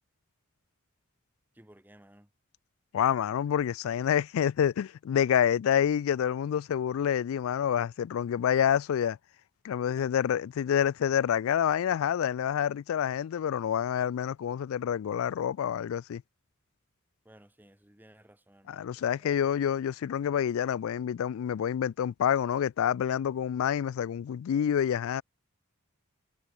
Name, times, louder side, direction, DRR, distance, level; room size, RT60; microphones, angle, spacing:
voice 1, 1.5-2.3 10.0-10.1 17.2-19.7, right 1 dB, 10° right, 1.4 m, -57 dB
voice 2, 2.9-9.2 9.6-16.2 18.7-25.2, left 9 dB, 75° left, 0.3 m, -28 dB
head